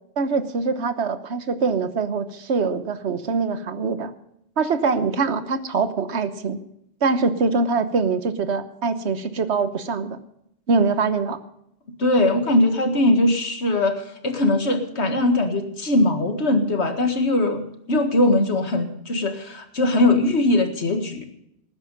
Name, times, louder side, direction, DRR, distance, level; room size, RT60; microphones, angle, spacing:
voice 1, 0.2-4.1 4.6-6.6 7.0-10.2 10.7-11.4, right 4 dB, 85° right, 11 dB, 1.4 m, -23 dB
voice 2, 12.0-17.6 17.9-21.2, left 2 dB, 85° left, 6 dB, 2.1 m, -20 dB
19.0 x 9.7 x 5.4 m, 0.76 s
omnidirectional pair, 1.1 m